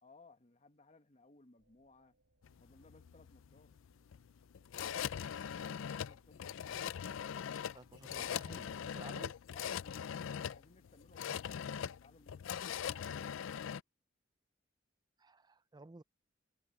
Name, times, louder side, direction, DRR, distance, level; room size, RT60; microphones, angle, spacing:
voice 1, 0.0-2.2 2.6-3.7 5.9-7.3 9.5-13.3, left 2 dB, 35° left, 1.3 m, -63 dB
sound 1, 1.6-9.4, right 1 dB, 75° right, 7.8 m, -77 dB
sound 2, 2.4-13.8, left 8 dB, 85° left, 0.4 m, -41 dB
voice 2, 7.7-9.3 15.2-16.0, right 2 dB, 20° right, 0.5 m, -54 dB
head